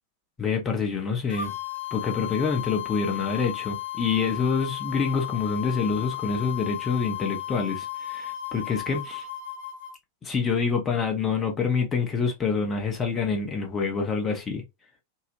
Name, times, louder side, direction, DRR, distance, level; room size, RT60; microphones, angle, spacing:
voice 1, 0.4-1.5 1.9-9.3 10.2-14.6, left 5 dB, 20° left, 0.7 m, -26 dB
sound 1, 1.3-9.9, left 12 dB, 55° left, 0.5 m, -34 dB
2.8 x 2.0 x 2.8 m
figure-of-eight pair, 90°, 0 cm